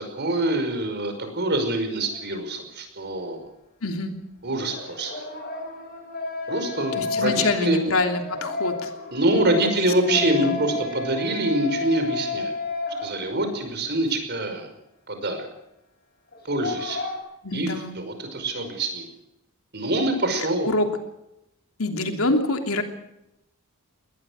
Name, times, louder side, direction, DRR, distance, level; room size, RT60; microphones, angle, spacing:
voice 1, 0.0-3.4 4.4-5.1 6.5-7.8 9.1-12.5 13.0-14.7 15.1-15.5 16.4-17.0 17.5-19.1 19.7-20.7, right 1 dB, 50° right, 7 dB, 5.4 m, -25 dB
sound 1, 2.0-2.2 4.7-13.6 13.9-14.0 16.3-17.2, left 3 dB, 45° left, 6.9 m, -32 dB
voice 2, 3.8-4.1 7.0-8.9 9.3-10.6 17.4-18.0 20.6-20.9 21.8-22.8, left 2 dB, 80° left, 5 dB, 3.1 m, -26 dB
21.5 x 19.5 x 6.5 m, 0.86 s
head